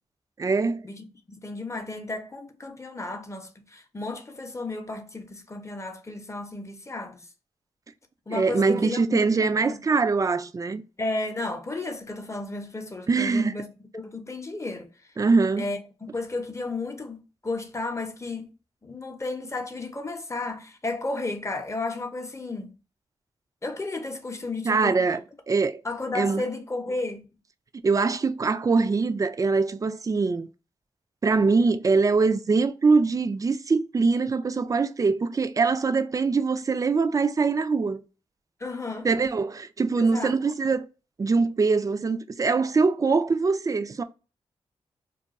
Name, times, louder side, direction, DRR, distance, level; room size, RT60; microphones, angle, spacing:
voice 1, 0.4-0.8 8.3-10.8 13.1-13.5 15.2-15.6 24.7-25.2 25.5-25.8 26.1-26.4 27.8-30.5 31.2-38.0 39.0-40.8 41.2-44.0, right 4 dB, 30° right, 0.3 m, -23 dB
voice 2, 1.4-7.3 8.3-9.2 9.6-9.8 11.0-13.7 13.9-14.9 15.6-15.8 16.1-18.5 18.8-22.7 23.6-25.0 25.8-27.2 38.6-39.1 40.0-40.4, left 2 dB, 25° left, 0.7 m, -33 dB
2.3 x 2.2 x 3.9 m
cardioid pair, 50°, 11 cm